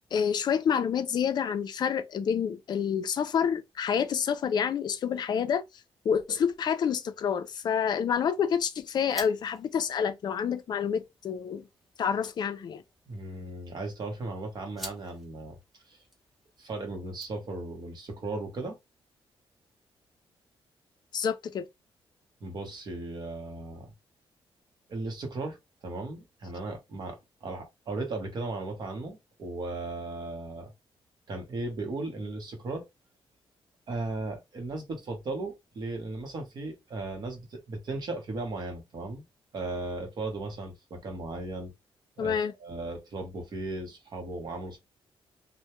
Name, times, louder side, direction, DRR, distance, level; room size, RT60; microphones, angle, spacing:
voice 1, 0.1-5.6 6.1-11.6 12.0-12.8 21.1-21.7 42.2-42.5, left 7 dB, 45° left, 0.4 m, -28 dB
sound 1, 7.5-17.8, equal, ahead, 0.8 m, -51 dB
voice 2, 13.1-15.6 15.9-16.0 16.6-18.8 22.4-23.9 24.9-25.6 25.8-30.7 31.3-32.9 33.9-39.2 39.5-41.7 42.2-44.8, right 2 dB, 45° right, 0.9 m, -36 dB
2.2 x 2.1 x 2.9 m
wide cardioid pair, 165°, 10 cm